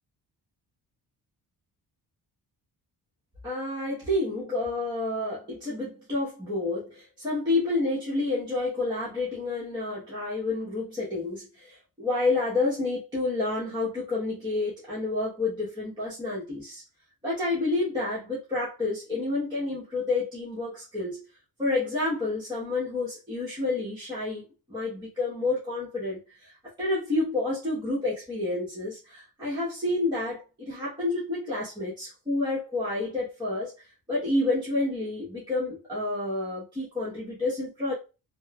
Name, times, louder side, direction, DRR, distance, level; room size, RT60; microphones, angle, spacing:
voice 1, 3.4-16.8 17.2-21.2 21.6-37.9, left 2 dB, 10° right, 0.9 m, -29 dB
3.0 x 2.0 x 2.2 m
wide cardioid pair, 165°, 38 cm